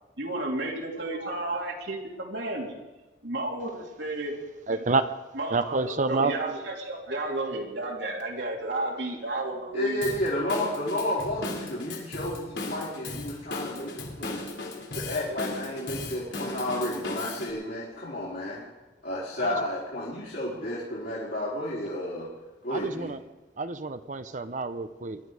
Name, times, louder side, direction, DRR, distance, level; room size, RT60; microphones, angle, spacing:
voice 1, 0.2-2.8 3.2-4.4 5.3-10.1, right 2 dB, 85° right, -1 dB, 3.1 m, -32 dB
voice 2, 4.7-5.0 5.5-6.3 19.4-19.5 22.7-23.2 23.6-25.2, right 3 dB, 45° right, 11 dB, 0.7 m, -28 dB
voice 3, 9.7-14.4 14.9-18.7 19.0-22.3 22.6-23.1, left 1 dB, 65° left, -8 dB, 4.2 m, -31 dB
Drum kit / Drum, 10.0-17.5, left 2 dB, 85° left, 3.3 m, -37 dB
22.5 x 11.5 x 4.9 m, 1.1 s
head